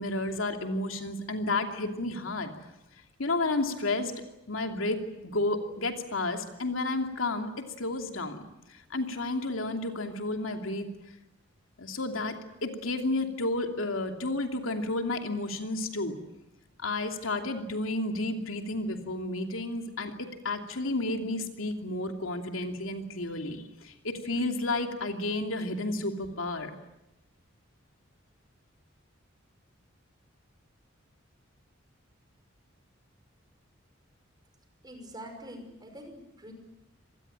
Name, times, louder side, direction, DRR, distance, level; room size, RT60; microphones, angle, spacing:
voice 1, 0.0-2.5 3.2-4.1 4.5-8.4 8.7-10.9 11.8-16.1 16.8-26.7, left 2 dB, 90° left, 4 dB, 2.8 m, -31 dB
voice 2, 34.8-36.5, equal, 20° right, 5 dB, 5.6 m, -45 dB
26.0 x 19.5 x 8.9 m, 0.89 s
head